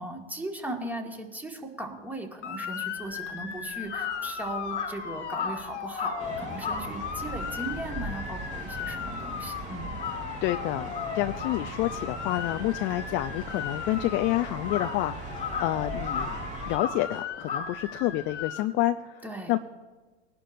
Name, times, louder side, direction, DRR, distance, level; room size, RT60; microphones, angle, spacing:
voice 1, 0.0-10.0 19.2-19.6, right 1 dB, 5° right, 2 dB, 1.8 m, -38 dB
Motor vehicle (road) / Siren, 2.4-18.6, left 8 dB, 80° left, 1.3 m, -37 dB
Crow, 3.0-9.5 9.8-18.4, left 5 dB, 20° left, 2.0 m, -38 dB
sound 1, 6.2-16.8, right 2 dB, 20° right, 2.3 m, -39 dB
voice 2, 10.4-16.3 16.6-19.6, left 15 dB, 35° left, 9 dB, 0.5 m, -29 dB
21.0 x 11.5 x 2.6 m, 1.3 s
hypercardioid pair, 105°, 35 cm